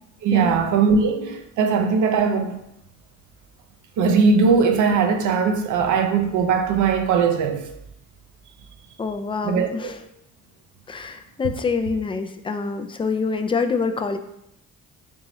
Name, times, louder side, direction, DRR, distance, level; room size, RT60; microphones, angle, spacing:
voice 1, 0.2-2.6 4.0-7.7 9.4-9.9, right 5 dB, 80° right, 0.6 m, -20 dB
voice 2, 9.0-10.0 10.9-14.2, left 4 dB, 20° left, 0.3 m, -26 dB
3.6 x 3.0 x 3.8 m
cardioid pair, 90°, 30 cm